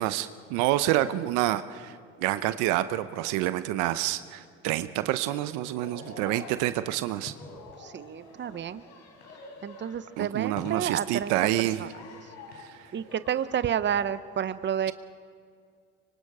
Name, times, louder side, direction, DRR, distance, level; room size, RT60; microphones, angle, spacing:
voice 1, 0.0-1.9 2.2-7.3 10.2-11.8 12.6-12.7, right 14 dB, 80° right, 13 dB, 0.8 m, -28 dB
sound 1, 5.7-13.7, left 3 dB, 70° left, 4.2 m, -47 dB
voice 2, 7.8-8.8 9.6-11.3 11.8-11.9 12.9-14.9, right 9 dB, 40° right, 14 dB, 0.9 m, -30 dB
25.0 x 24.5 x 4.9 m, 2.2 s
supercardioid pair, 75°, 30 cm